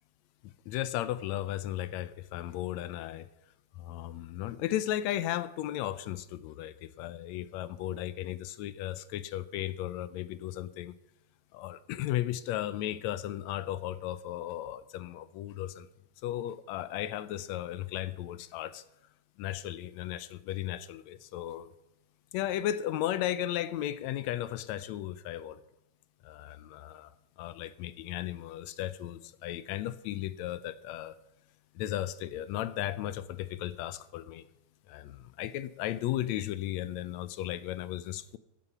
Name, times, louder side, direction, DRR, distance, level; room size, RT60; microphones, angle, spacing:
voice 1, 0.4-3.3 3.8-10.9 11.5-15.9 16.2-18.8 19.4-21.7 22.3-25.6 26.2-27.1 27.4-31.2 31.7-34.4 34.9-38.4, left 13 dB, 75° left, 1.7 m, -35 dB
15.0 x 10.5 x 5.5 m
omnidirectional pair, 3.6 m